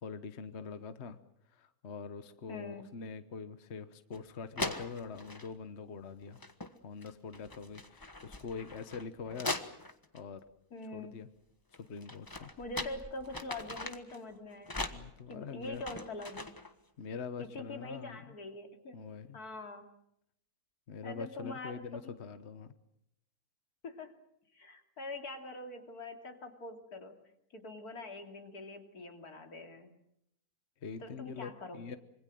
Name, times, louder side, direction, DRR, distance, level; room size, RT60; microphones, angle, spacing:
voice 1, 0.0-1.2 1.5-6.4 6.8-9.6 10.1-10.5 10.9-11.3 11.7-12.5 14.9-15.8 17.0-18.3 18.9-19.4 20.9-22.7 30.8-32.0, left 5 dB, 50° left, 11 dB, 1.4 m, -44 dB
voice 2, 2.5-2.9 10.7-11.2 12.6-14.9 15.3-16.5 17.4-19.0 19.3-19.9 21.0-22.2 23.8-24.2 24.5-27.2 27.5-29.9 31.0-31.8, left 2 dB, 85° left, 5 dB, 3.2 m, -44 dB
sound 1, 4.1-4.2 4.6-5.5 6.3-6.7 7.0-10.2 11.7-14.2 14.6-16.7, left 2 dB, 15° left, 1.3 m, -41 dB
26.0 x 23.5 x 7.7 m, 0.77 s
omnidirectional pair, 1.6 m